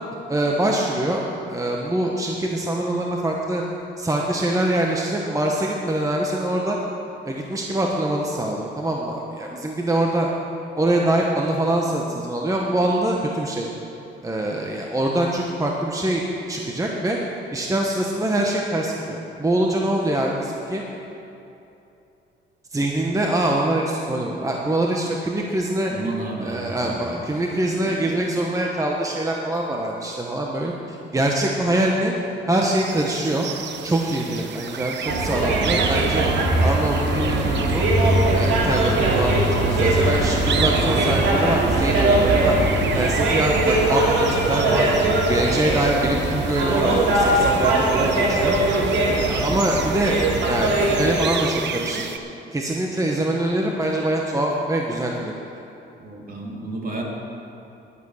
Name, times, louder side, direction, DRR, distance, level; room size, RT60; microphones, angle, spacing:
voice 1, 0.3-3.6 4.0-6.8 7.2-10.3 10.8-13.7 14.2-17.2 17.5-20.8 22.7-25.9 26.4-32.1 32.5-33.5 33.8-36.3 36.6-37.9 38.3-42.6 42.9-44.9 45.3-48.6 49.0-52.0 52.5-55.4, right 1 dB, 15° right, -1 dB, 1.2 m, -24 dB
voice 2, 25.9-27.3 27.8-27.9 56.0-57.0, right 2 dB, 45° right, -1 dB, 2.7 m, -32 dB
sound 1, 32.5-52.2, right 8 dB, 65° right, 0.8 m, -33 dB
sound 2, 35.0-51.2, right 2 dB, 85° right, 2.9 m, -20 dB
11.5 x 10.5 x 6.5 m, 2.8 s
cardioid pair, 90°, 20 cm